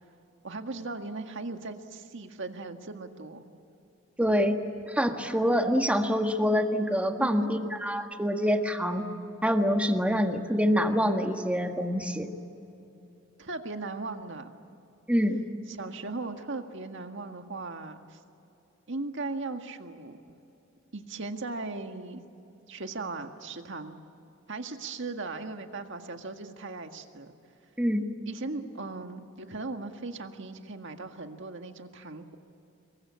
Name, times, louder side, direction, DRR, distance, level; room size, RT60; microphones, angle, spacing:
voice 1, 0.4-3.5 7.2-7.5 13.4-14.5 15.7-18.2 18.9-20.4 20.9-22.2 22.7-24.0 24.5-27.3 28.3-32.4, right 3 dB, 60° right, 6 dB, 1.8 m, -38 dB
voice 2, 4.2-4.6 4.9-9.1 9.4-12.3 15.1-15.4 27.8-28.0, equal, 5° right, 5 dB, 1.6 m, -26 dB
27.0 x 22.5 x 8.5 m, 2.9 s
head